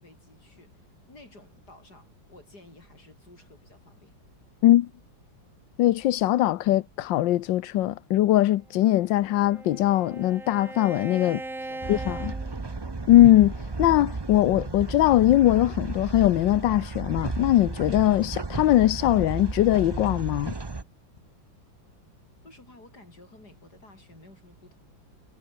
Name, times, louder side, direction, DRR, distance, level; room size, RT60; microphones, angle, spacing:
voice 1, 0.0-4.2 11.7-12.7 22.4-24.8, left 2 dB, 55° left, 7.7 m, -53 dB
voice 2, 5.8-11.4 11.9-12.3 13.1-20.5, left 14 dB, 80° left, 1.4 m, -21 dB
Bowed string instrument, 8.8-13.3, right 2 dB, 40° right, 6.1 m, -40 dB
sound 1, 11.8-20.8, right 3 dB, 25° right, 0.6 m, -34 dB
omnidirectional pair, 2.1 m